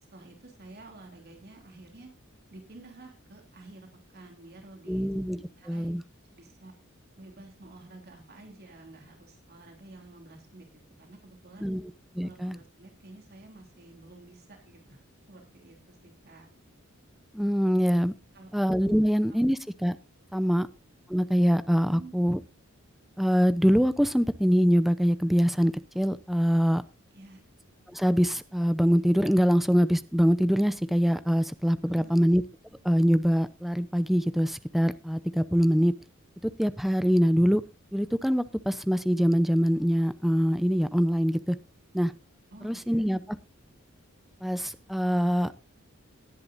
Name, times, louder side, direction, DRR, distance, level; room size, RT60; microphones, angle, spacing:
voice 1, 0.1-2.1 2.5-3.9 4.1-5.9 6.4-6.7 7.2-10.7 11.0-11.7 12.2-16.5 18.3-18.5 18.9-19.0 21.8-22.2 27.1-27.4 31.9-32.2 42.5-43.1, right 2 dB, 50° right, 2 dB, 3.1 m, -50 dB
voice 2, 4.9-5.4 5.7-6.0 11.6-11.9 12.2-12.6 17.3-18.1 18.5-20.0 20.3-20.7 21.1-22.4 23.2-26.8 27.9-32.4 32.8-35.9 36.4-37.6 37.9-41.6 41.9-42.1 42.6-43.4 44.4-45.5, equal, ahead, 13 dB, 0.6 m, -24 dB
19.0 x 10.5 x 2.6 m, 0.28 s
head